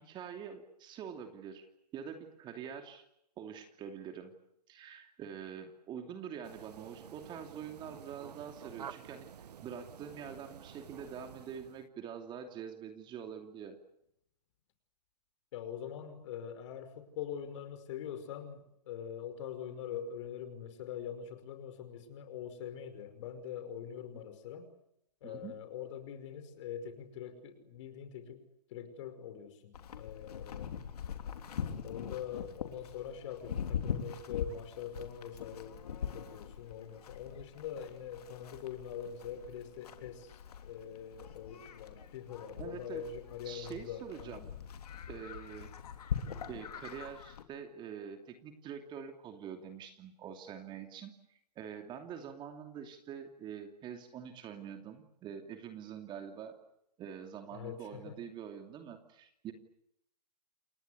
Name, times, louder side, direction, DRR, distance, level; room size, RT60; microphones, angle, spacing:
voice 1, 0.0-1.7 1.9-3.0 3.4-4.3 4.7-9.3 9.6-13.8 25.2-25.5 42.6-43.0 43.4-44.5 45.1-45.7 46.5-56.6 57.0-59.5, right 8 dB, 20° right, 6 dB, 2.8 m, -45 dB
sound 1, 6.4-11.9, right 8 dB, 70° right, 1.3 m, -50 dB
voice 2, 15.5-24.7 25.2-28.4 28.7-30.7 31.8-44.4 57.5-58.2, left 8 dB, 45° left, 10 dB, 5.4 m, -43 dB
Livestock farm animals working animals, 29.7-47.4, left 7 dB, 65° left, 3.5 m, -42 dB
29.0 x 21.0 x 8.4 m, 0.78 s
hypercardioid pair, 135°, 21 cm